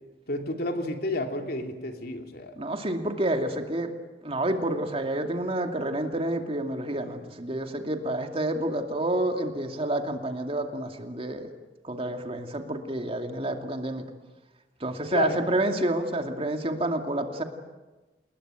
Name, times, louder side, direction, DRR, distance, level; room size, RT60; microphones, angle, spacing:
voice 1, 0.3-2.5 15.1-15.4, left 2 dB, 60° left, 4 dB, 3.0 m, -30 dB
voice 2, 2.6-3.9 4.2-11.5 11.8-14.0 14.8-17.4, right 1 dB, 35° right, 5 dB, 2.5 m, -29 dB
29.0 x 21.0 x 9.1 m, 1.2 s
head